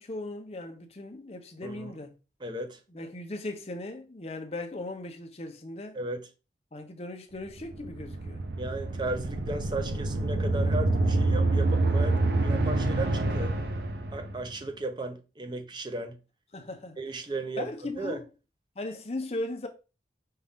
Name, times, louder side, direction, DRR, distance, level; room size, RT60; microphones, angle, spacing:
voice 1, 0.0-2.1 2.9-6.0 6.7-8.4 16.5-17.0 17.6-18.2 18.8-19.7, left 2 dB, 35° left, 0.7 m, -38 dB
voice 2, 1.6-1.9 2.4-2.8 5.9-6.3 8.6-13.5 14.1-16.2 17.0-17.7 18.0-18.2, right 2 dB, 25° right, 0.6 m, -35 dB
sound 1, 7.6-14.5, right 2 dB, 65° right, 0.6 m, -27 dB
5.5 x 2.5 x 3.5 m
head